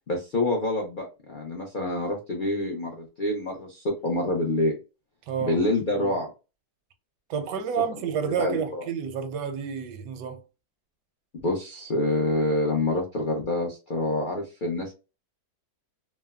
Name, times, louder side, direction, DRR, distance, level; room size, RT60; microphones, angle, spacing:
voice 1, 0.1-4.8 5.4-6.3 8.3-8.8 11.4-14.9, left 2 dB, 80° left, 0.4 m, -27 dB
voice 2, 5.3-5.6 7.3-10.4, right 7 dB, 85° right, 1.2 m, -29 dB
3.2 x 2.0 x 2.3 m
omnidirectional pair, 1.8 m